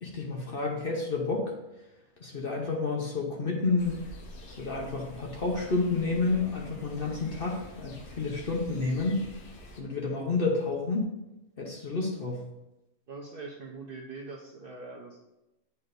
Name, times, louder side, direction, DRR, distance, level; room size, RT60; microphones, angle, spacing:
voice 1, 0.0-1.5 2.2-4.0 4.5-9.2 9.8-11.1 11.6-12.5, left 3 dB, 45° left, -1 dB, 0.9 m, -30 dB
sound 1, 3.8-9.8, left 1 dB, 80° left, 1.4 m, -47 dB
voice 2, 13.1-15.2, right 3 dB, 45° right, -1 dB, 0.8 m, -42 dB
9.5 x 4.2 x 2.6 m, 0.96 s
omnidirectional pair, 1.6 m